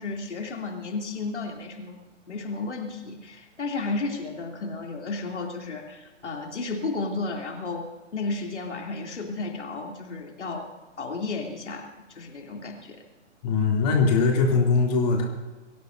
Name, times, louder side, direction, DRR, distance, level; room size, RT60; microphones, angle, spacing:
voice 1, 0.0-2.0 2.3-10.7 11.0-11.9 12.1-13.0, left 3 dB, 70° left, 1 dB, 3.1 m, -33 dB
voice 2, 13.4-15.3, left 4 dB, 35° left, 0 dB, 3.0 m, -21 dB
24.0 x 16.0 x 2.7 m, 1.2 s
figure-of-eight pair, 135°, 36 cm